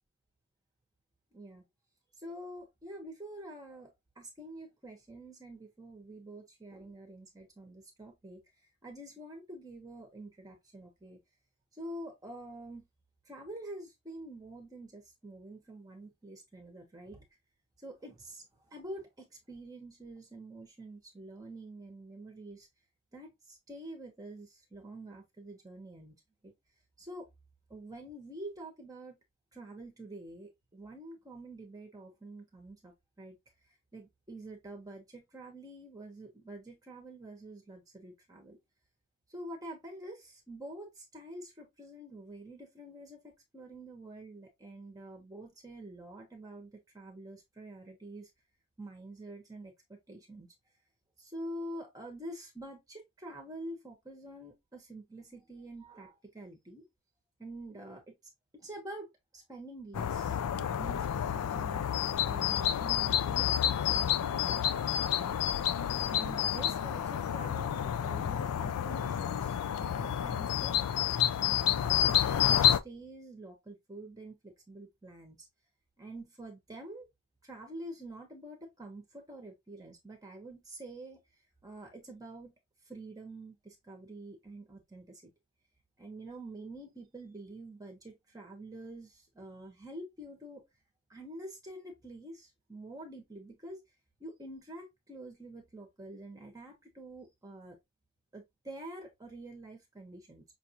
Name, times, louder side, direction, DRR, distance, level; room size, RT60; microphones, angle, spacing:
voice 1, 1.3-1.6 2.2-8.4 8.8-11.2 11.7-12.9 13.3-17.2 17.8-22.7 23.1-26.1 26.4-26.5 27.0-27.3 27.7-29.2 29.5-33.4 33.9-38.6 39.3-48.3 48.8-50.5 51.2-56.9 57.4-58.1 58.5-59.1 59.3-61.8 62.2-65.4 66.0-70.8 71.4-75.5 76.0-77.1 77.4-81.2 81.6-82.5 82.9-85.2 86.0-90.6 91.1-93.8 94.2-97.8 98.3-100.4, right 1 dB, 15° right, 1.0 m, -47 dB
sound 1, 59.9-72.8, left 10 dB, 80° left, 0.4 m, -29 dB
5.8 x 2.5 x 2.8 m
head